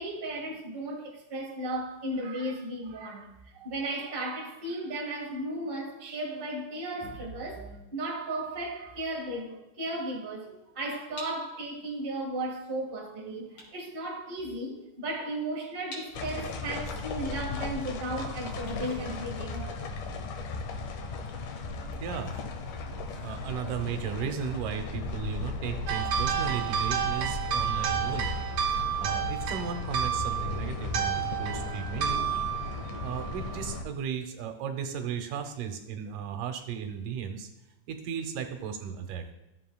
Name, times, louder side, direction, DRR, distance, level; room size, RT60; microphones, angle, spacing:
voice 1, 0.0-3.3 3.5-20.0, right 1 dB, 25° right, 1.3 m, -35 dB
sound 1, 11.1-19.9, left 1 dB, 55° left, 4.0 m, -51 dB
sound 2, 16.1-33.8, left 3 dB, 75° left, 2.4 m, -36 dB
voice 2, 22.0-22.4 23.2-28.3 29.0-32.2 33.0-37.5 37.9-39.3, right 8 dB, 85° right, 2.4 m, -35 dB
sound 3, 25.9-33.8, right 9 dB, 65° right, 1.7 m, -31 dB
14.5 x 7.5 x 2.3 m
omnidirectional pair, 3.7 m